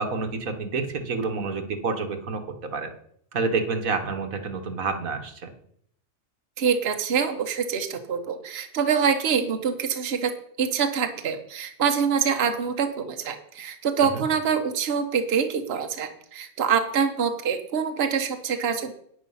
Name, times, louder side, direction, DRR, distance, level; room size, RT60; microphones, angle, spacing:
voice 1, 0.0-2.4 2.7-2.9 3.3-5.5 14.0-14.2, right 4 dB, 90° right, 6 dB, 1.9 m, -28 dB
voice 2, 6.6-10.3 10.6-18.9, right 6 dB, 50° right, 6 dB, 1.3 m, -25 dB
10.5 x 9.3 x 5.6 m, 0.67 s
omnidirectional pair, 1.4 m